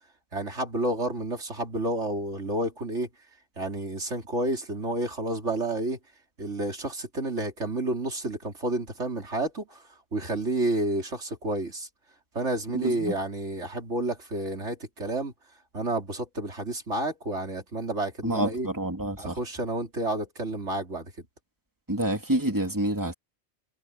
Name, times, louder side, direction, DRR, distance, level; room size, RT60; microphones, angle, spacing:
voice 1, 0.3-3.1 3.6-6.0 6.4-9.8 10.1-11.9 12.4-15.3 15.7-18.7 19.2-21.1, right 2 dB, 80° right, 3.8 m, -30 dB
voice 2, 12.7-13.1 18.2-19.4 21.9-23.1, right 1 dB, 15° right, 3.1 m, -28 dB
omnidirectional pair, 1.2 m